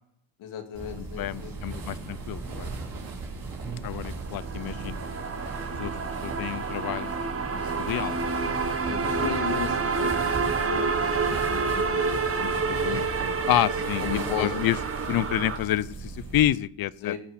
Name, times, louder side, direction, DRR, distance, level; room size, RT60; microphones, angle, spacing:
voice 1, 0.4-1.8 8.9-13.4 14.0-14.5 17.0-17.2, left 8 dB, 70° left, 5 dB, 2.4 m, -35 dB
sound 1, 0.7-16.4, right 3 dB, 45° right, 3.5 m, -37 dB
voice 2, 1.0-2.7 3.8-5.0 5.7-5.9 6.2-7.2 7.5-8.3 13.5-14.8 15.1-17.1, left 13 dB, 50° left, 21 dB, 0.5 m, -28 dB
sound 2, 4.3-15.6, right 4 dB, 25° right, 1.5 m, -29 dB
16.5 x 6.2 x 5.7 m, 0.71 s
cardioid pair, 95°, 49 cm